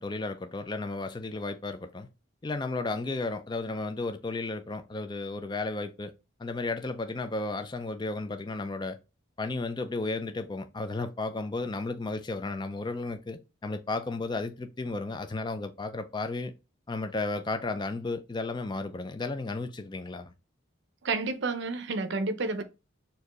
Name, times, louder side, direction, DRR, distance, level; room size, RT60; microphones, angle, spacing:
voice 1, 0.0-2.1 2.4-6.1 6.4-9.0 9.4-16.5 16.9-20.3, left 3 dB, 20° left, 0.4 m, -33 dB
voice 2, 21.0-22.6, right 3 dB, 60° right, 0.6 m, -30 dB
4.4 x 2.7 x 3.0 m
head